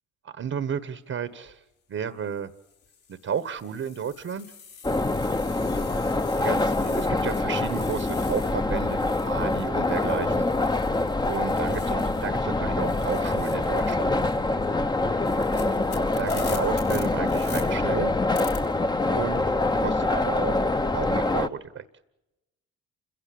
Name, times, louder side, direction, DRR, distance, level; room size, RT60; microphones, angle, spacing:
voice 1, 0.2-1.6 1.9-2.5 3.1-4.5 5.8-5.9 6.4-10.5 11.3-14.1 15.6-15.8 16.2-18.1 19.1-21.8, right 7 dB, 50° right, 13 dB, 1.3 m, -33 dB
sound 1, 1.3-1.5 2.3-12.4 12.7-17.6 18.3-18.6, left 6 dB, 80° left, 5.2 m, -46 dB
sound 2, 4.8-21.5, left 2 dB, 15° left, 0.9 m, -25 dB
28.5 x 16.5 x 8.6 m, 0.97 s
cardioid pair, 90°, 30 cm